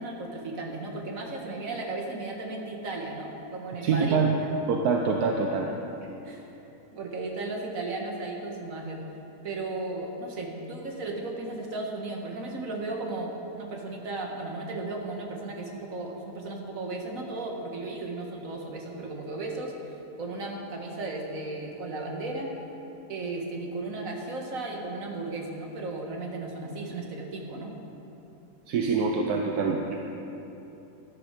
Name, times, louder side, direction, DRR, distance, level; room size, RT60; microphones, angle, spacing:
voice 1, 0.0-4.2 6.2-6.5 6.9-9.0 9.4-19.7 20.2-22.5 23.1-27.7, right 2 dB, 65° right, 1 dB, 1.9 m, -35 dB
voice 2, 3.8-4.3 4.7-5.7 28.7-30.0, right 5 dB, 80° right, 1 dB, 1.3 m, -25 dB
13.0 x 12.0 x 5.1 m, 3.0 s
omnidirectional pair, 1.6 m